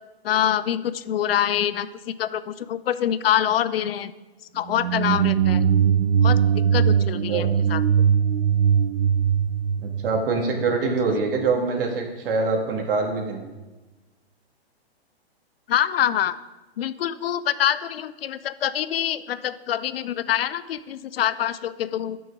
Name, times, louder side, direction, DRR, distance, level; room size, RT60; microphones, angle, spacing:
voice 1, 0.2-4.1 4.5-5.7 6.2-8.1 15.7-16.4 16.8-22.2, left 10 dB, 65° left, 15 dB, 0.6 m, -25 dB
sound 1, 4.7-10.7, right 8 dB, 75° right, 0.6 m, -20 dB
voice 2, 9.8-13.4, right 4 dB, 60° right, 2 dB, 2.3 m, -24 dB
11.0 x 6.3 x 4.9 m, 1.1 s
hypercardioid pair, 145°, 31 cm